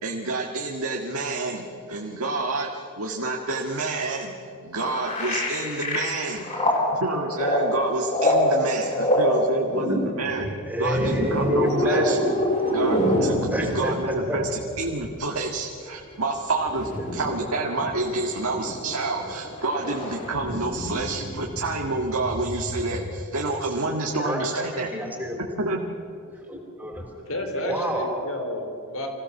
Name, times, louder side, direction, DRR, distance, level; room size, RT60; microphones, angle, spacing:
voice 1, 0.0-4.3 4.6-6.6 6.9-10.5 10.8-12.2 12.7-13.3 13.6-24.9 25.6-25.8, right 2 dB, 70° right, 0 dB, 2.0 m, -28 dB
sound 1, 4.8-15.1 16.4-23.1, equal, 35° left, 6.3 m, -27 dB
voice 2, 10.7-12.2 13.5-13.9 24.2-24.6 24.9-25.4 26.5-27.1 27.6-28.1, equal, 5° right, 1 dB, 3.7 m, -27 dB
voice 3, 27.3-29.1, left 1 dB, 65° left, 4 dB, 3.8 m, -31 dB
27.0 x 16.5 x 7.2 m, 2.5 s
head